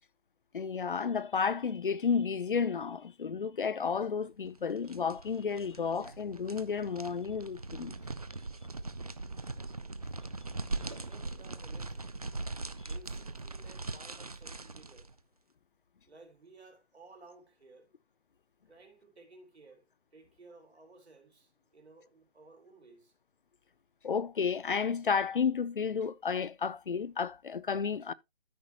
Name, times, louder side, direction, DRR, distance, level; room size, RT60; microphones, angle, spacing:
voice 1, 0.5-8.0 24.0-28.1, left 6 dB, 55° left, 0.5 m, -32 dB
sound 1, 4.5-15.1, right 3 dB, 35° right, 0.4 m, -41 dB
voice 2, 10.8-12.2 12.6-15.1 16.1-17.9 18.7-23.1, right 3 dB, 90° right, 3.8 m, -57 dB
13.0 x 5.1 x 2.9 m
hypercardioid pair, 175°, 32 cm